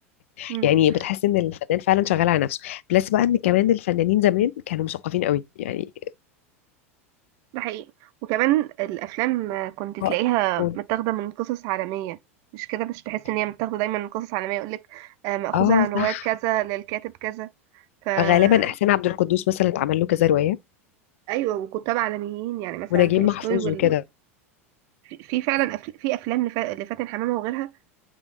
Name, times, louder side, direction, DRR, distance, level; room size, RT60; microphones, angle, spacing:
voice 1, 0.4-5.9 10.0-10.1 10.6-10.8 15.5-16.2 18.2-20.6 22.9-24.0, left 13 dB, 65° left, 0.5 m, -21 dB
voice 2, 7.5-7.9 8.2-12.2 12.5-17.5 18.0-18.7 21.3-23.9 25.1-27.7, right 16 dB, 50° right, 0.4 m, -27 dB
8.6 x 2.9 x 4.0 m
figure-of-eight pair, 85°, 8 cm